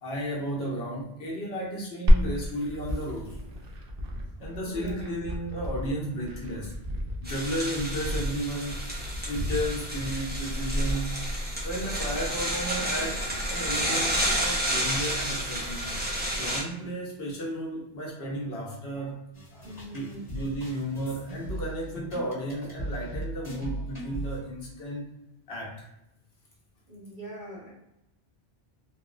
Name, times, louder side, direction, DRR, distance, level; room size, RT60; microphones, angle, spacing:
voice 1, 0.0-3.4 4.4-6.7 7.2-8.8 9.3-11.1 11.6-16.0 16.4-19.2 19.5-25.1 25.5-25.7, equal, 70° left, -4 dB, 1.1 m, -33 dB
Glass, 2.1-10.0, equal, 65° right, 0.7 m, -29 dB
voice 2, 4.6-5.1 19.6-20.2 26.9-27.7, right 1 dB, 50° right, -5 dB, 1.2 m, -42 dB
sound 1, 7.2-16.6, right 1 dB, 10° right, 0.5 m, -30 dB
sound 2, 19.3-24.4, equal, 40° left, 1.4 m, -38 dB
3.3 x 2.2 x 2.4 m, 0.88 s
omnidirectional pair, 1.1 m